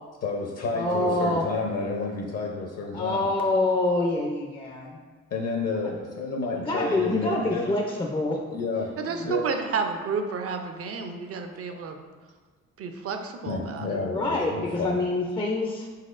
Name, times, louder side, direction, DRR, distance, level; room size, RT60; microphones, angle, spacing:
voice 1, 0.2-3.3 5.3-7.7 8.5-8.9 9.3-9.4 11.7-11.8 13.5-15.0, left 3 dB, 55° left, 0 dB, 0.7 m, -30 dB
voice 2, 0.7-1.5 2.9-5.0 5.8-5.9 6.7-8.4 9.2-9.3 14.1-15.9, left 2 dB, 15° left, 0 dB, 0.4 m, -26 dB
voice 3, 9.0-12.0 12.8-14.0, right 5 dB, 50° right, 6 dB, 0.6 m, -31 dB
4.6 x 4.1 x 2.5 m, 1.4 s
cardioid pair, 90°, 30 cm